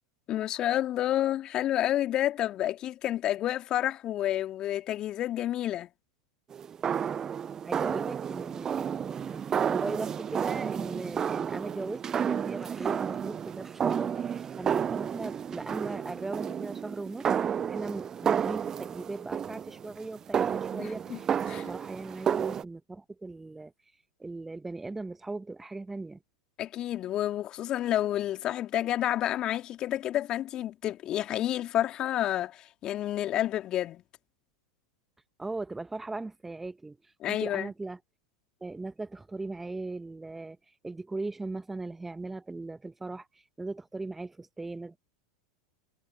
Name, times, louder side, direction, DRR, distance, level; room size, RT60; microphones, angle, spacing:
voice 1, 0.3-5.9 20.8-21.2 21.5-21.7 26.6-34.0 37.2-37.7, left 12 dB, 40° left, 2.0 m, -29 dB
sound 1, 6.5-22.6, right 8 dB, 25° right, 0.4 m, -31 dB
voice 2, 7.6-17.3 17.7-23.7 24.2-26.2 35.4-37.0 37.3-38.0 38.6-40.6 40.8-45.0, right 3 dB, 10° right, 1.4 m, -38 dB
figure-of-eight pair, 85°, 2 cm